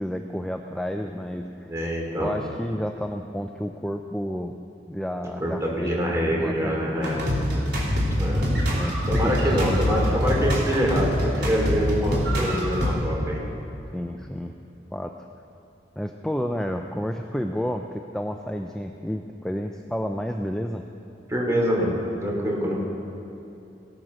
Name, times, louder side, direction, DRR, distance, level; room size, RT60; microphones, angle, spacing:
voice 1, 0.0-1.7 2.2-4.5 4.9-6.0 6.3-7.2 7.6-7.8 8.7-9.7 13.9-14.6 14.9-15.3 16.0-20.8, equal, 5° left, 4 dB, 0.4 m, -31 dB
voice 2, 1.6-2.3 5.4-7.2 8.2-8.4 9.1-11.1 11.4-13.4 21.3-21.9 22.2-22.8, equal, 15° right, -3 dB, 3.2 m, -25 dB
sound 1, 7.0-12.9, equal, 75° right, 3.3 m, -24 dB
17.5 x 9.0 x 6.4 m, 2.9 s
head